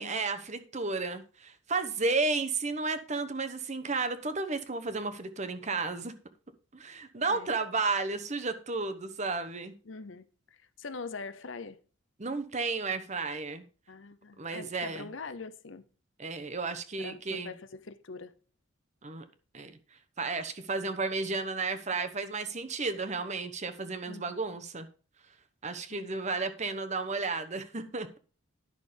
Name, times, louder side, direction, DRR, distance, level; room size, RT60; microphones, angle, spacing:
voice 1, 0.0-6.1 6.7-9.7 12.2-13.6 14.4-15.0 16.2-17.5 19.0-19.2 19.5-19.7 20.2-24.9 25.6-28.2, right 3 dB, 35° right, 1.0 m, -33 dB
voice 2, 9.8-11.8 13.9-15.8 17.0-18.3 24.1-24.4 25.9-26.2, left 4 dB, 60° left, 0.8 m, -43 dB
11.0 x 6.2 x 5.1 m
head